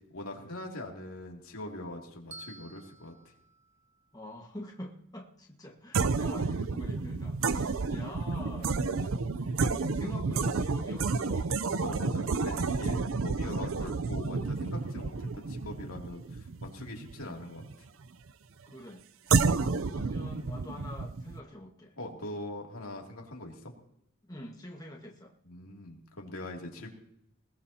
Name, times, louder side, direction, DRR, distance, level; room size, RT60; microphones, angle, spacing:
voice 1, 0.1-3.1 7.7-7.8 11.8-17.7 19.3-19.5 22.0-23.7 25.5-26.9, left 1 dB, 90° left, 0 dB, 2.8 m, -42 dB
Bell, 2.3-4.5, right 2 dB, 35° right, 1.4 m, -52 dB
voice 2, 4.1-11.6 12.2-12.9 13.7-14.0 18.7-21.9 24.2-25.3, left 1 dB, 20° left, 0 dB, 1.6 m, -46 dB
sound 1, 5.9-17.7 19.3-21.4, right 4 dB, 75° right, 0.6 m, -30 dB
20.5 x 17.0 x 2.9 m, 0.77 s
head